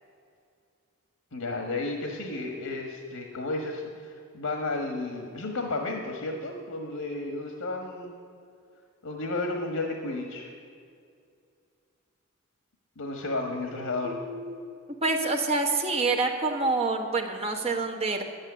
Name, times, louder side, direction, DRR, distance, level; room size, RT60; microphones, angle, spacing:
voice 1, 1.3-8.1 9.0-10.5 13.0-14.2, left 2 dB, 85° left, 3 dB, 1.4 m, -32 dB
voice 2, 14.0-14.6 15.0-18.2, right 3 dB, 30° right, 1 dB, 1.5 m, -27 dB
11.0 x 8.8 x 9.7 m, 2.4 s
head